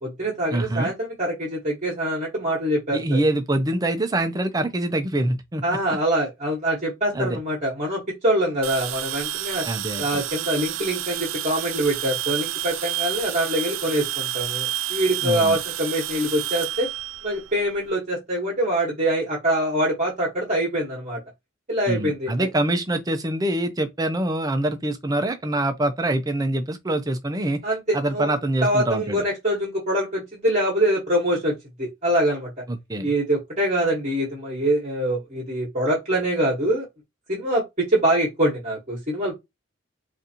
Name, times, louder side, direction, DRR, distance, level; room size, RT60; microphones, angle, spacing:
voice 1, 0.0-3.2 5.6-9.6 10.0-16.9 17.2-21.2 21.7-22.5 27.6-28.3 28.6-32.5 33.0-36.9 37.3-39.3, right 1 dB, 35° right, 1.2 m, -24 dB
voice 2, 0.5-0.9 2.9-5.6 7.1-7.4 9.7-10.2 15.2-15.6 21.9-27.6 27.9-29.2 32.7-33.1, right 1 dB, 20° right, 0.5 m, -25 dB
sound 1, 8.6-17.9, right 12 dB, 70° right, 0.5 m, -30 dB
4.0 x 2.5 x 2.8 m
head